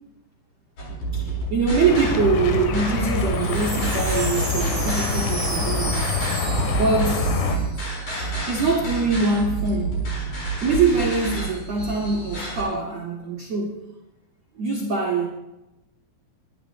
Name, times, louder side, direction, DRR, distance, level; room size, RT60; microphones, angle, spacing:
sound 1, 0.8-12.6, right 3 dB, 40° left, 5.4 m, -29 dB
voice 1, 1.2-6.1 6.6-7.5 8.5-10.0 10.6-13.8 14.6-15.3, right 4 dB, 85° right, -2 dB, 1.5 m, -23 dB
sound 2, 1.9-7.6, left 5 dB, 85° left, 4.1 m, -26 dB
Wind chime, 3.1-8.3 8.6-8.7 8.9-9.3, right 2 dB, 45° right, 6.8 m, -34 dB
23.0 x 11.5 x 3.0 m, 0.97 s
omnidirectional pair, 5.9 m